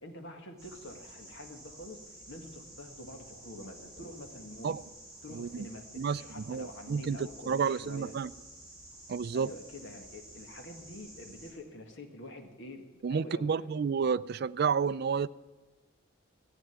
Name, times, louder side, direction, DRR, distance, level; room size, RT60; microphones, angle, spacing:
voice 1, 0.0-2.0 2.3-4.8 5.2-8.1 9.3-13.7, left 1 dB, 60° left, 4 dB, 1.9 m, -47 dB
sound 1, 0.6-11.5, right 1 dB, 5° right, 6.1 m, -51 dB
voice 2, 5.3-5.7 6.0-8.3 9.1-9.5 13.0-15.3, right 6 dB, 50° right, 15 dB, 0.3 m, -31 dB
14.5 x 8.1 x 9.4 m, 1.2 s
head